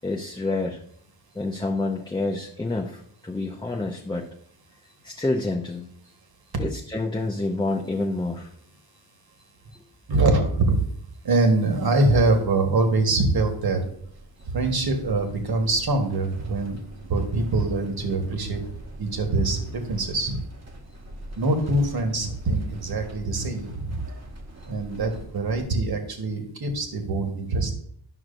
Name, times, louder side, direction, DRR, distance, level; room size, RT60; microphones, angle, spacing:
voice 1, 0.0-0.8 1.3-4.2 5.0-5.9 6.6-8.5, left 2 dB, 10° left, 0 dB, 0.5 m, -28 dB
voice 2, 10.1-10.8 11.2-13.9 14.4-18.6 19.0-20.4 21.4-24.0 24.7-27.7, right 2 dB, 50° right, 4 dB, 1.4 m, -24 dB
sound 1, 13.5-25.6, right 1 dB, 35° right, 1.0 m, -44 dB
12.0 x 6.0 x 2.6 m, 0.65 s
wide cardioid pair, 125°, 46 cm